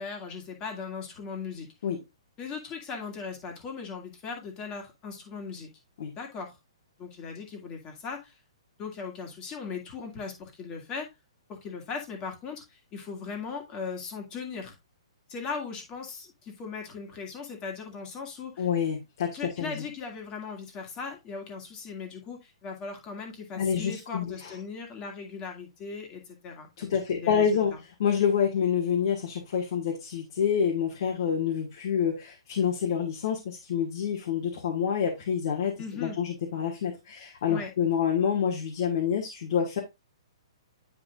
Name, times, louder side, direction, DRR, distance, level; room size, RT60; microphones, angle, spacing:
voice 1, 0.0-1.7 2.4-5.7 6.2-6.6 7.0-8.4 8.8-11.1 11.5-14.7 15.3-18.7 19.3-27.8 35.8-36.2 37.5-37.7, left 5 dB, 25° left, 2 dB, 1.9 m, -38 dB
voice 2, 18.6-19.8 23.5-24.5 26.8-27.7 28.0-39.8, left 7 dB, 60° left, 1 dB, 1.6 m, -27 dB
9.9 x 4.8 x 2.4 m, 0.22 s
hypercardioid pair, 150°, 3 cm